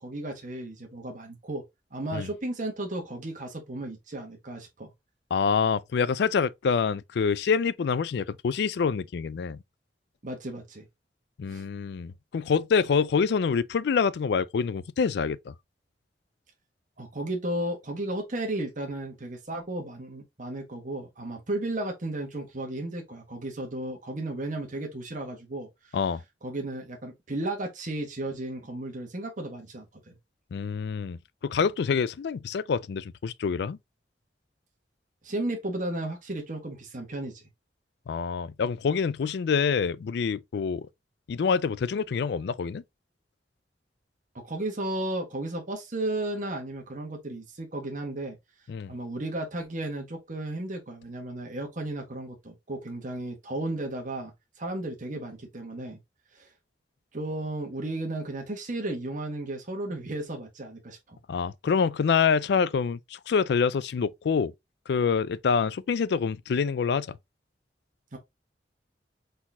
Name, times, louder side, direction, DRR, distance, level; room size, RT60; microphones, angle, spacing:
voice 1, 0.0-1.6 1.9-4.9 10.2-10.8 11.5-11.7 17.0-26.0 26.4-30.1 35.2-37.4 44.3-48.4 48.9-56.0 56.3-56.5 57.1-61.2 68.1-68.2, right 1 dB, 45° right, 1.3 m, -34 dB
voice 2, 5.3-9.6 11.4-15.5 25.9-26.2 30.5-31.2 31.4-33.8 38.1-40.9 41.3-42.8 48.7-48.9 61.3-64.5 64.9-67.2, left 6 dB, 65° left, 0.4 m, -26 dB
4.1 x 4.1 x 2.8 m
head